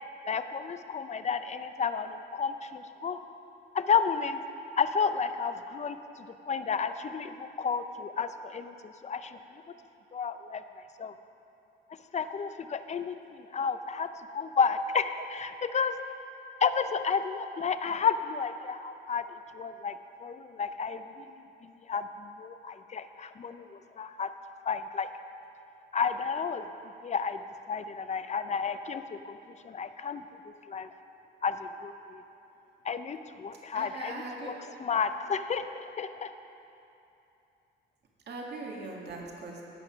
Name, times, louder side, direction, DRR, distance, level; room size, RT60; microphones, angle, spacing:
voice 1, 0.2-3.2 3.7-4.4 4.8-9.4 10.1-10.6 11.0-11.1 12.1-15.9 16.6-19.2 19.5-21.3 21.6-24.3 24.7-25.1 25.9-26.6 27.0-27.4 27.7-29.4 29.6-30.2 30.7-30.9 31.4-32.2 32.8-34.5 34.8-36.3, left 6 dB, 35° left, 10 dB, 0.6 m, -31 dB
voice 2, 33.7-34.5 38.3-39.6, right 3 dB, 55° right, -1 dB, 1.9 m, -40 dB
16.0 x 5.8 x 5.8 m, 2.8 s
cardioid pair, 90°, 20 cm